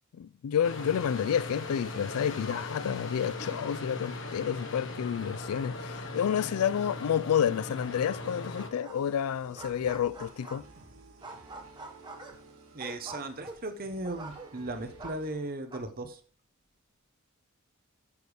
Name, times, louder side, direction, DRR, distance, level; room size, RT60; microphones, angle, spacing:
voice 1, 0.2-10.6, left 8 dB, 75° left, 0.3 m, -30 dB
sound 1, 0.6-8.7, left 2 dB, 60° left, 1.5 m, -39 dB
sound 2, 8.5-9.2 9.4-10.8 11.2-14.7 15.0-15.8, right 2 dB, 20° right, 1.2 m, -45 dB
sound 3, 8.9-15.3, right 2 dB, 70° right, 3.1 m, -54 dB
voice 2, 12.7-16.2, right 2 dB, 40° right, 0.9 m, -37 dB
8.4 x 6.9 x 4.9 m
head